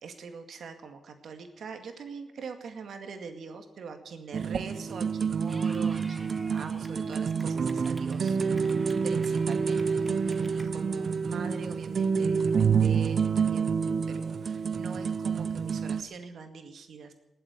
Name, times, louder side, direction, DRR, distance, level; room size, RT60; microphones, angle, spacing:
voice 1, 0.0-13.7 14.1-17.1, right 5 dB, 80° right, 6 dB, 2.1 m, -43 dB
sound 1, 4.3-16.0, right 6 dB, 65° right, 0.6 m, -28 dB
Clapping / Cheering, 5.5-10.7, right 1 dB, 15° right, 2.0 m, -50 dB
19.5 x 7.9 x 9.3 m, 0.95 s
cardioid pair, 85°, 0 cm